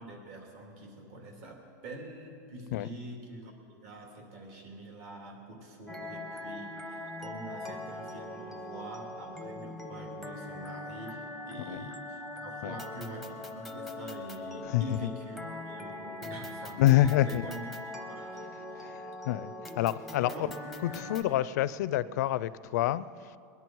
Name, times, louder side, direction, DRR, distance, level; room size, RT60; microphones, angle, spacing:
voice 1, 0.0-17.7 18.1-18.9 20.2-20.7, right 2 dB, 50° right, 2.9 m, -45 dB
sound 1, 5.9-21.2, left 2 dB, ahead, 0.8 m, -41 dB
voice 2, 14.6-15.1 16.8-17.4 18.8-20.3 20.8-23.4, left 14 dB, 70° left, 0.4 m, -27 dB
21.0 x 11.0 x 4.6 m
supercardioid pair, 165°, 10 cm